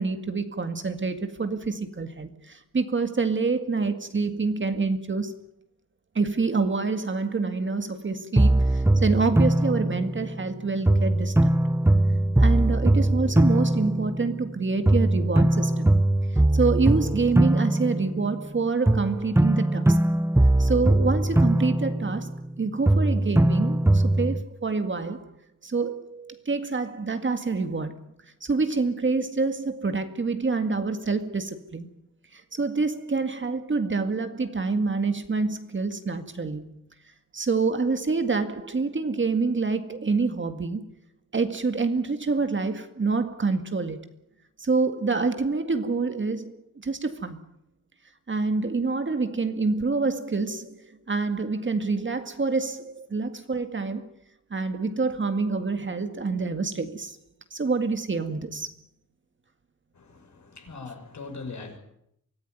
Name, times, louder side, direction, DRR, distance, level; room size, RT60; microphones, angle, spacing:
voice 1, 0.0-5.3 6.2-11.5 12.4-15.9 16.5-20.0 20.6-25.3 25.6-28.0 28.4-31.9 32.3-36.7 37.3-40.9 41.3-44.1 44.6-47.4 48.3-54.1 54.5-57.2 57.5-58.7, right 4 dB, 35° right, 2.1 m, -27 dB
sound 1, 8.4-10.5 10.9-14.6 14.9-18.5 18.9-22.6 22.9-24.4, right 1 dB, 5° right, 0.8 m, -21 dB
voice 2, 60.0-61.8, left 4 dB, 55° left, 6.2 m, -40 dB
24.5 x 15.5 x 9.5 m
cardioid pair, 90°, 33 cm